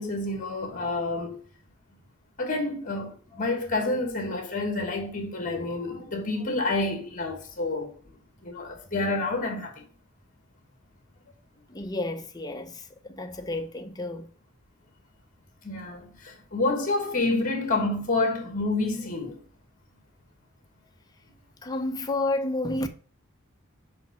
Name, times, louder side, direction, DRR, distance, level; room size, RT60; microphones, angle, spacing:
voice 1, 0.0-1.4 2.4-7.9 8.4-9.8 15.6-19.4, left 2 dB, 40° left, 1.5 m, -28 dB
voice 2, 11.7-14.3 21.6-22.9, left 2 dB, 20° left, 0.7 m, -31 dB
5.1 x 4.7 x 5.7 m
head